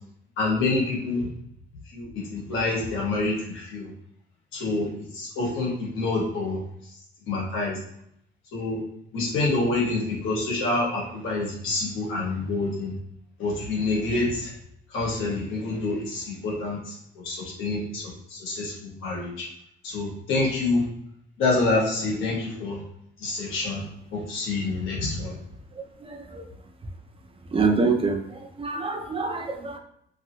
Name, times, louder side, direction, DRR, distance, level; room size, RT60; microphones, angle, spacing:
voice 1, 0.4-1.3 1.9-3.9 4.5-6.6 7.3-7.8 8.5-8.8 9.1-12.9 13.4-14.5 14.9-17.0 17.2-19.5 19.8-20.8 21.4-22.8 23.2-23.8 24.1-25.3, left 2 dB, 85° left, -3 dB, 1.3 m, -27 dB
voice 2, 27.5-28.2 28.6-29.8, right 4 dB, 30° right, 4 dB, 0.5 m, -24 dB
3.0 x 2.6 x 2.7 m, 0.73 s
cardioid pair, 90°, 20 cm